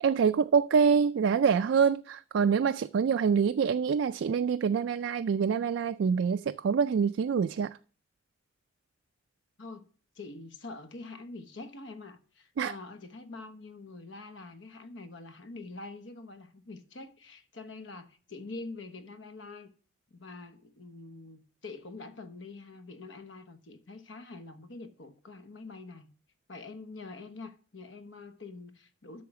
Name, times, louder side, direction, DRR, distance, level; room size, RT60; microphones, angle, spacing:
voice 1, 0.0-7.8 12.6-12.7, right 6 dB, 70° right, 0.3 m, -26 dB
voice 2, 10.1-19.7 20.1-26.1 26.5-29.2, left 3 dB, 70° left, 1.1 m, -45 dB
8.5 x 6.4 x 5.9 m
head